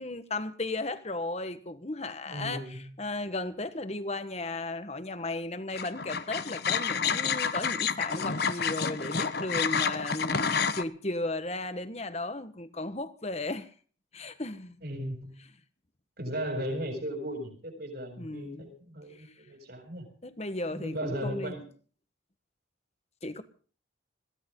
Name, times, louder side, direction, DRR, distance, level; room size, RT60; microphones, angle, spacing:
voice 1, 0.0-13.7 14.1-14.8 18.2-18.7 19.2-19.3 20.2-21.5 23.2-23.4, left 2 dB, 35° left, 1.4 m, -35 dB
voice 2, 2.2-2.9 14.8-15.4 16.2-20.1 20.7-21.6, equal, 50° right, 7.6 m, -36 dB
sound 1, 5.8-10.8, left 6 dB, 55° left, 1.1 m, -29 dB
22.0 x 16.5 x 3.9 m
head